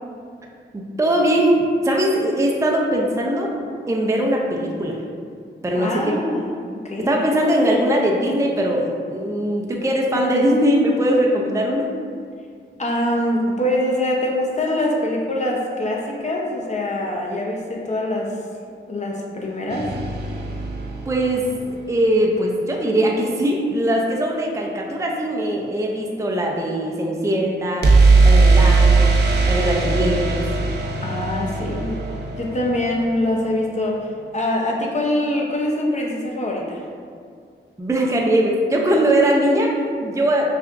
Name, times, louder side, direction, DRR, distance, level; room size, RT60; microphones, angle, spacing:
voice 1, 0.7-3.5 3.9-5.0 5.6-6.2 7.0-11.9 21.1-27.9 28.2-29.1 29.5-30.4 37.8-40.5, right 1 dB, 15° right, -1 dB, 0.5 m, -20 dB
voice 2, 5.7-7.2 12.8-18.3 18.9-19.9 31.0-32.0 32.4-36.8, left 1 dB, 35° left, -1 dB, 0.8 m, -24 dB
sound 1, 19.7-21.7 27.8-33.6, right 3 dB, 55° right, 0.6 m, -18 dB
5.8 x 2.3 x 2.5 m, 2.2 s
cardioid pair, 50°, 21 cm